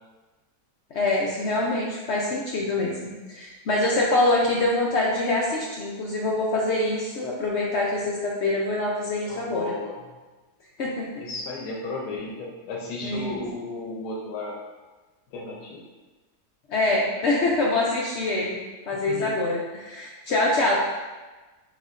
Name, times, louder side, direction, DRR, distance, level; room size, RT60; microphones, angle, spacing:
voice 1, 0.9-9.7 10.8-11.1 13.0-13.4 16.7-18.6 18.9-20.8, left 2 dB, 70° left, -3 dB, 0.6 m, -25 dB
voice 2, 9.2-10.1 11.2-14.6 15.3-15.8 19.1-19.4, left 3 dB, 90° left, -3 dB, 1.2 m, -34 dB
6.2 x 2.6 x 2.4 m, 1.2 s
omnidirectional pair, 1.7 m